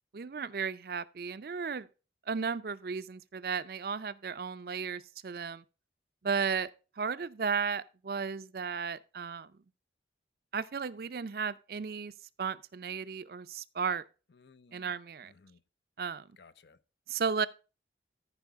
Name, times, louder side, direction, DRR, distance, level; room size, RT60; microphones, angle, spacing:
voice 1, 0.1-1.9 2.3-5.6 6.2-6.7 7.0-9.5 10.5-12.1 12.4-14.0 14.7-15.3 16.0-16.3 17.1-17.5, right 5 dB, 55° right, 0.5 m, -34 dB
voice 2, 14.3-14.9 15.2-15.6 16.4-16.8, left 4 dB, 65° left, 0.6 m, -59 dB
14.0 x 4.9 x 3.5 m
head